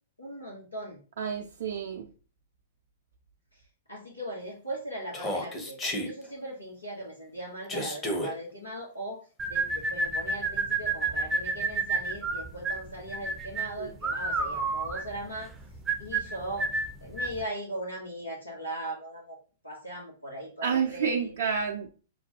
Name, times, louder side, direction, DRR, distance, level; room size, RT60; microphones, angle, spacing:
voice 1, 0.2-1.0 3.5-3.6 3.9-9.2 9.5-15.5 16.0-16.7 17.0-19.4 19.6-21.3, right 1 dB, 85° left, 1.1 m, -39 dB
voice 2, 1.2-2.1 13.8-13.9 20.6-21.9, right 6 dB, 60° right, 0.5 m, -29 dB
Human voice, 5.1-6.1 7.7-8.3, equal, 20° left, 0.9 m, -31 dB
sound 1, 9.4-17.4, right 3 dB, 15° right, 0.6 m, -30 dB
6.0 x 2.2 x 2.9 m
figure-of-eight pair, 105°, 0 cm